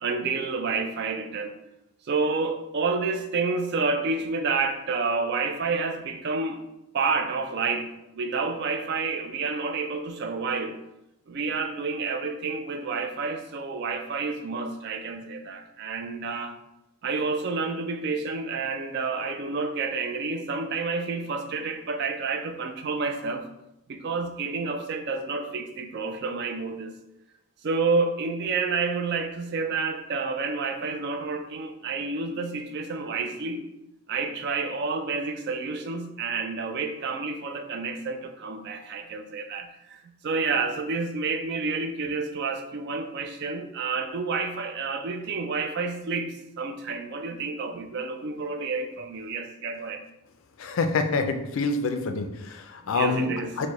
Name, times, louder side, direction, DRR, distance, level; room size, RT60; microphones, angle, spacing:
voice 1, 0.0-1.5 2.0-6.6 6.9-10.8 11.3-16.6 17.0-23.4 23.9-27.0 27.6-33.7 34.1-50.0 52.9-53.6, right 4 dB, 50° right, 7 dB, 0.3 m, -29 dB
voice 2, 50.6-53.3 53.6-53.7, left 4 dB, 60° left, 7 dB, 0.3 m, -26 dB
4.4 x 2.1 x 2.9 m, 0.88 s
head